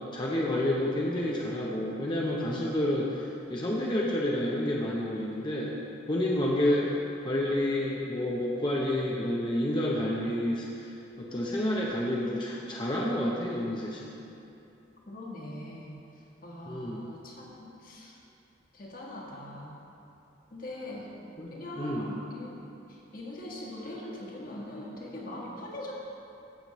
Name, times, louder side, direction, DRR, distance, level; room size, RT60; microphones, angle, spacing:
voice 1, 0.0-5.8 6.1-6.9 7.2-14.2 16.7-17.1 21.4-22.1, left 1 dB, 25° left, -4 dB, 0.7 m, -29 dB
voice 2, 15.1-15.9 16.4-18.2 18.7-19.7 20.5-21.1 21.5-22.6 22.9-25.9, left 1 dB, 45° left, -3 dB, 1.5 m, -41 dB
15.0 x 7.0 x 3.0 m, 2.8 s
head